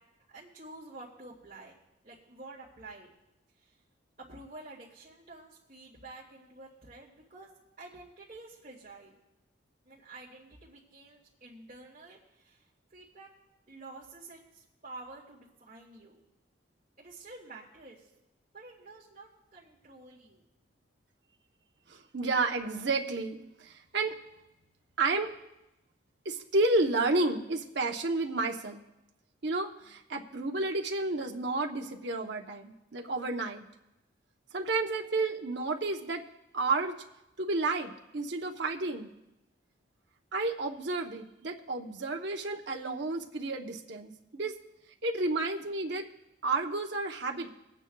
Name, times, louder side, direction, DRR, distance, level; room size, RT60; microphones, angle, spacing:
voice 1, 0.3-1.7 2.0-3.1 3.7-3.8 4.2-7.5 7.8-9.2 9.9-12.6 12.9-13.3 13.7-16.2 17.0-18.1 18.5-20.4, right 2 dB, 40° right, -8 dB, 2.1 m, -49 dB
voice 2, 21.9-24.2 25.0-25.3 26.2-28.8 29.4-33.7 34.5-36.2 36.5-36.9 37.4-39.1 40.3-44.6 45.0-46.1 46.4-47.5, right 3 dB, 60° right, 2 dB, 0.9 m, -31 dB
26.5 x 8.9 x 2.3 m, 0.91 s
head